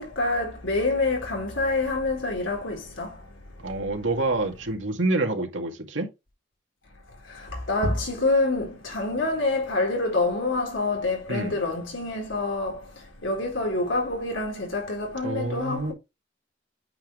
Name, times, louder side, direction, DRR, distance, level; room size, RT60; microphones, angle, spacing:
voice 1, 0.0-3.2 7.3-12.8 13.2-15.9, left 2 dB, 85° left, 4.1 m, -26 dB
voice 2, 3.6-6.1 11.3-11.6 15.2-15.9, right 2 dB, 80° right, 2.2 m, -27 dB
8.6 x 5.4 x 3.2 m
head